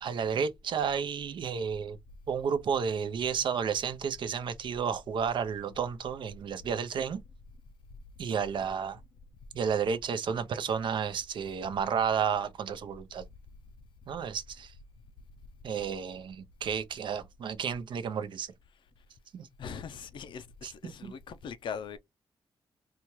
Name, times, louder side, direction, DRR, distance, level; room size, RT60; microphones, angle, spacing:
voice 1, 0.0-2.0 2.3-7.2 8.2-9.0 9.5-13.2 14.1-14.7 15.6-18.5 19.3-19.5 20.6-21.1, right 7 dB, 65° right, 0.6 m, -32 dB
voice 2, 18.7-19.0 19.6-22.0, left 6 dB, 70° left, 0.5 m, -41 dB
4.2 x 2.3 x 3.0 m
cardioid pair, 105°, 9 cm